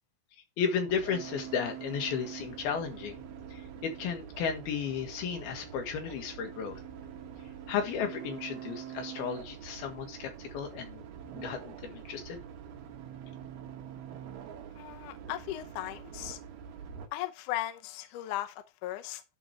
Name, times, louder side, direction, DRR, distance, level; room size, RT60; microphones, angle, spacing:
voice 1, 0.6-3.2 3.5-6.8 7.7-11.0 11.4-12.4, left 7 dB, 85° left, 3.6 m, -34 dB
sound 1, 0.9-17.1, right 8 dB, 85° right, 3.2 m, -45 dB
voice 2, 14.8-16.4 17.1-19.2, left 14 dB, 70° left, 2.1 m, -37 dB
11.0 x 4.2 x 4.6 m
omnidirectional pair, 4.3 m